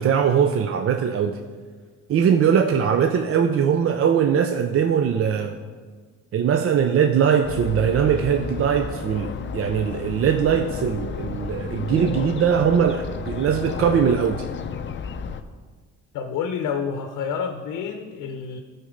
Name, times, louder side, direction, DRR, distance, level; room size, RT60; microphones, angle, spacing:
voice 1, 0.0-1.4 2.1-5.5 6.3-14.5, right 7 dB, 45° right, 6 dB, 0.5 m, -21 dB
sound 1, 7.4-15.4, left 6 dB, 40° left, 0.5 m, -32 dB
voice 2, 16.1-18.6, left 6 dB, 90° left, 6 dB, 0.7 m, -28 dB
11.5 x 4.3 x 5.0 m, 1.5 s
cardioid pair, 115°, 30 cm